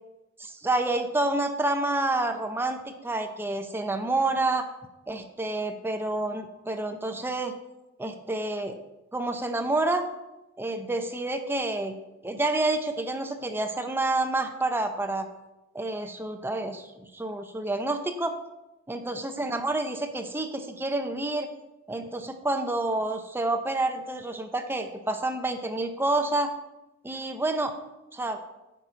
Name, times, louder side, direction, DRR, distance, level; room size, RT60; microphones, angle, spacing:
voice 1, 0.4-2.8 3.0-4.7 5.1-7.5 8.0-8.8 9.1-10.0 10.6-12.0 12.2-15.3 15.7-16.9 17.1-18.3 18.9-21.5 21.9-26.5 27.0-27.7 28.1-28.4, right 2 dB, 10° right, 7 dB, 0.5 m, -28 dB
9.1 x 5.7 x 3.9 m, 0.97 s
head